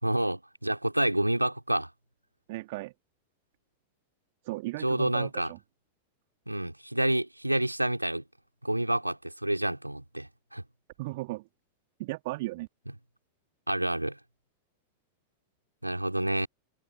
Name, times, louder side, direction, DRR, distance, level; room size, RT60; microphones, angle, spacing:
voice 1, 0.0-1.9 4.8-5.5 6.5-8.2 8.6-10.6 13.7-14.2 15.8-16.5, right 1 dB, 85° right, 4.0 m, -28 dB
voice 2, 2.5-2.9 4.4-5.6 11.0-11.4 12.0-12.7, right 21 dB, 50° right, 3.3 m, -36 dB
figure-of-eight pair, 90°, 0 cm